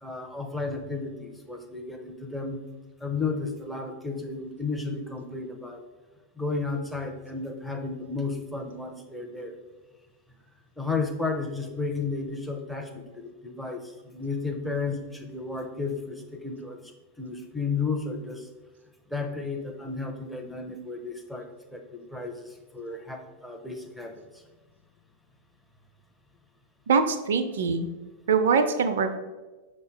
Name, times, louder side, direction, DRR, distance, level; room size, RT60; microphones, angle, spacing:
voice 1, 0.0-2.6 3.0-5.8 6.4-9.6 10.8-16.9 17.2-18.5 19.1-24.4, left 4 dB, ahead, 4 dB, 0.5 m, -33 dB
voice 2, 26.9-27.9 28.3-29.2, right 5 dB, 60° right, 9 dB, 0.4 m, -23 dB
5.1 x 2.1 x 4.5 m, 1.2 s
figure-of-eight pair, 90°, 0 cm